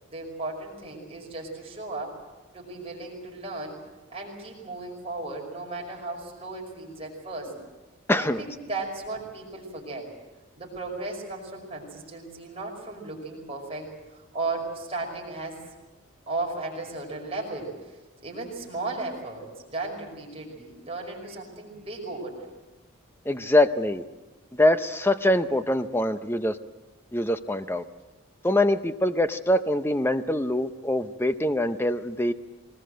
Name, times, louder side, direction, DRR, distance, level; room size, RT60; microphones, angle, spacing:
voice 1, 0.1-2.2 2.5-3.8 4.1-7.6 8.1-10.1 10.6-15.6 16.3-18.0 18.2-22.5, right 2 dB, 25° right, -1 dB, 5.4 m, -35 dB
voice 2, 8.1-8.4 23.3-24.0 24.6-26.6 27.1-27.8 28.4-32.3, left 1 dB, 10° left, 9 dB, 0.7 m, -24 dB
23.5 x 20.0 x 7.8 m, 1.1 s
head